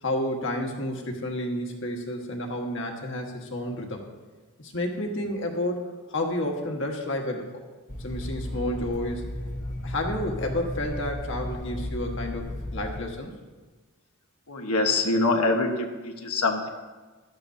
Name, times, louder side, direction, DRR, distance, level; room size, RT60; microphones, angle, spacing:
voice 1, 0.0-4.1 4.6-7.6 8.0-9.3 9.8-13.3, left 1 dB, 55° left, 2 dB, 1.6 m, -30 dB
sound 1, 7.9-13.0, left 1 dB, 35° left, 1.2 m, -34 dB
voice 2, 14.5-16.7, left 3 dB, 90° left, 3 dB, 1.3 m, -24 dB
16.0 x 12.5 x 2.8 m, 1.3 s
head